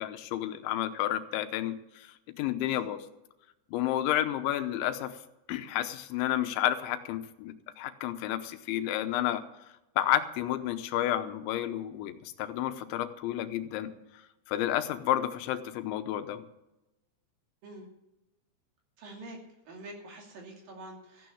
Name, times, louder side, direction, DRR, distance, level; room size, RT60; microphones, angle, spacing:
voice 1, 0.0-3.0 3.7-5.2 5.5-9.4 10.0-13.9 14.5-16.5, left 12 dB, 90° left, 10 dB, 3.3 m, -31 dB
voice 2, 19.0-19.4 19.7-21.3, right 2 dB, 55° right, 1 dB, 4.2 m, -46 dB
15.0 x 9.2 x 7.1 m, 0.93 s
omnidirectional pair, 5.1 m